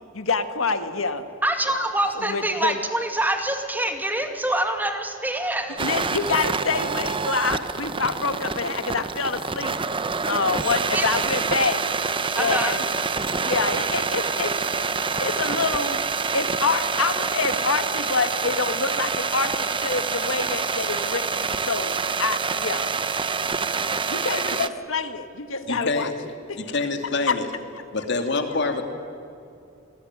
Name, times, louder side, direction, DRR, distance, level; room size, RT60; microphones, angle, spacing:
voice 1, 0.1-1.2 2.2-2.8 5.8-9.8 10.3-11.8 12.4-12.8 13.4-14.5 15.2-16.0 16.3-21.9 22.2-22.9 24.1-26.1 26.5-26.6 27.3-27.4, left 4 dB, 80° left, 9 dB, 1.8 m, -26 dB
voice 2, 1.4-5.8 10.9-11.1 12.3-12.7, right 1 dB, 10° right, 5 dB, 2.2 m, -25 dB
sound 1, 5.8-24.7, right 5 dB, 25° right, 1.0 m, -26 dB
voice 3, 25.7-26.1 26.6-27.5 27.9-28.8, left 3 dB, 60° left, 5 dB, 2.8 m, -26 dB
28.5 x 20.5 x 9.7 m, 2.6 s
head